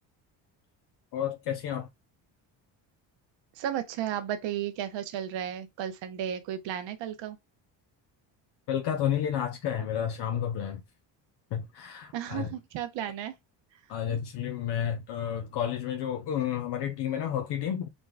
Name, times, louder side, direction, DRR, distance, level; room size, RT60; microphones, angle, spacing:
voice 1, 1.1-1.9 8.7-10.8 11.5-12.5 13.9-17.9, left 9 dB, 65° left, 0.7 m, -31 dB
voice 2, 3.6-7.4 12.1-13.3, right 10 dB, 75° right, 0.9 m, -34 dB
5.2 x 2.2 x 3.3 m
cardioid pair, 125°, 44 cm